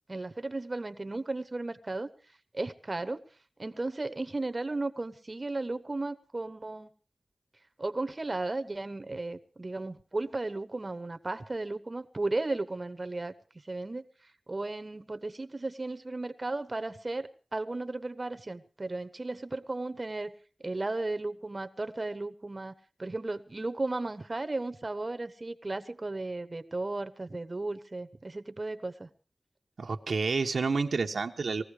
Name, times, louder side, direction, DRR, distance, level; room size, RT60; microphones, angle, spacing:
voice 1, 0.1-2.1 2.5-3.2 3.6-6.9 7.8-13.3 13.6-14.0 14.5-20.3 20.6-29.1, right 2 dB, 40° right, 10 dB, 0.9 m, -35 dB
voice 2, 29.8-31.6, right 4 dB, 85° right, 4 dB, 1.0 m, -29 dB
19.5 x 15.0 x 4.9 m, 0.39 s
wide cardioid pair, 60°, 0 cm